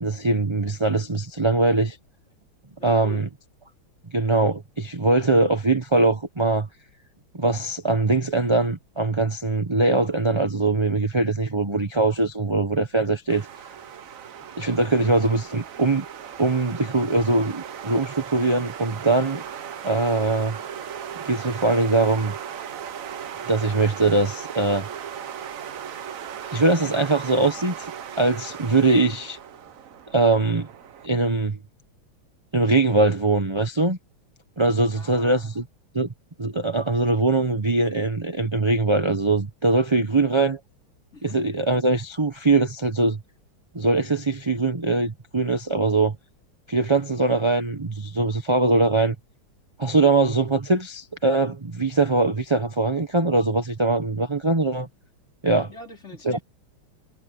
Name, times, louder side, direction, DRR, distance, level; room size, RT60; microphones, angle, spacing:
voice 1, 0.0-2.0 2.8-3.2 4.1-6.7 7.3-13.5 14.6-16.0 16.4-19.4 19.8-20.6 21.2-22.3 23.5-24.9 26.5-27.9 28.2-29.4 30.1-30.7 31.0-31.6 32.5-34.0 34.6-35.6 35.9-36.1 36.4-40.6 41.2-43.2 43.7-46.1 46.7-49.1 49.8-54.9 55.4-55.7 56.2-56.4, right 3 dB, 20° right, 0.9 m, -22 dB
voice 2, 2.8-3.3 14.9-15.1 34.9-35.5 41.1-41.4 55.7-56.4, left 2 dB, 30° left, 4.9 m, -42 dB
sound 1, 13.3-31.1, right 8 dB, 55° right, 1.0 m, -37 dB
omnidirectional pair, 2.3 m